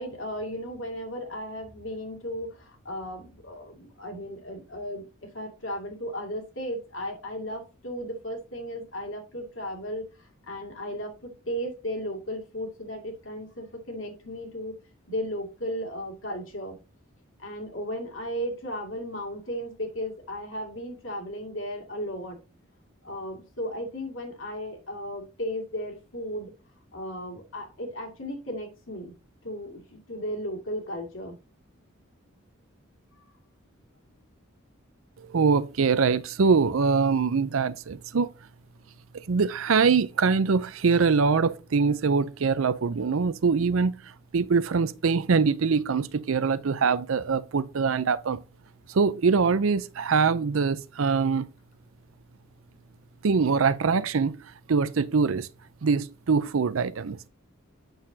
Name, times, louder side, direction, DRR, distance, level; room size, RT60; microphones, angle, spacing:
voice 1, 0.0-14.7 15.1-16.8 17.4-22.4 23.0-26.5 26.9-29.2 29.4-31.4, equal, 65° left, 2.4 m, -35 dB
voice 2, 35.3-38.3 39.3-43.9 44.3-48.4 48.9-51.5 53.2-54.4 54.7-55.5 55.8-57.3, right 5 dB, 75° right, 0.5 m, -23 dB
7.8 x 6.7 x 2.8 m
head